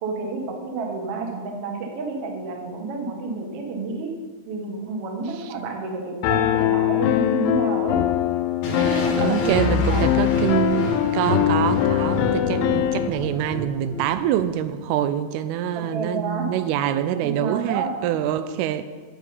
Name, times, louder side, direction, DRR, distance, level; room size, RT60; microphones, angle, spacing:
voice 1, 0.0-4.1 4.5-8.0 8.7-9.6 9.9-10.1 15.9-16.5 16.8-17.9, right 3 dB, 55° right, 1 dB, 1.8 m, -30 dB
Piano, 6.2-13.1, left 12 dB, 85° left, 2.1 m, -22 dB
sound 1, 8.6-14.6, equal, 70° left, 3.1 m, -30 dB
voice 2, 8.7-18.8, right 11 dB, 85° right, 11 dB, 2.5 m, -25 dB
10.5 x 8.1 x 5.5 m, 1.4 s
omnidirectional pair, 4.5 m